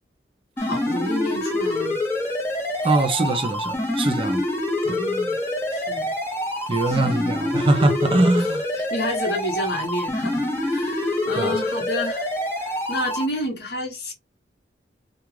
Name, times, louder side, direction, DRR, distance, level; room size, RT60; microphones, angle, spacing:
voice 1, 0.6-2.0 4.8-5.4 5.7-6.1 6.9-7.3 8.3-8.5 8.7-12.3 12.6-14.1, left 1 dB, 60° left, 0.9 m, -30 dB
sound 1, 0.6-13.2, left 1 dB, 15° left, 0.8 m, -26 dB
voice 2, 2.8-4.4 4.9-5.0 6.7-8.6 11.4-11.6, right 2 dB, 30° right, 0.5 m, -22 dB
2.4 x 2.3 x 3.1 m
head